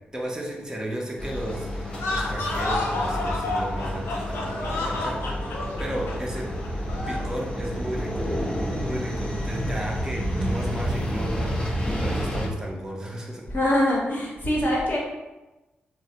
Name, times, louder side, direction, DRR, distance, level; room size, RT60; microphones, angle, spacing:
voice 1, 0.1-5.2 5.8-6.5 7.1-8.3 8.8-13.4, right 1 dB, 15° right, -2 dB, 0.7 m, -34 dB
sound 1, 1.2-12.5, equal, 20° left, 0.8 m, -30 dB
sound 2, 1.9-7.3, left 2 dB, 75° left, 0.5 m, -30 dB
voice 2, 13.5-15.0, left 1 dB, 50° left, -4 dB, 1.0 m, -23 dB
3.0 x 2.1 x 2.8 m, 1.1 s
supercardioid pair, 45°, 4 cm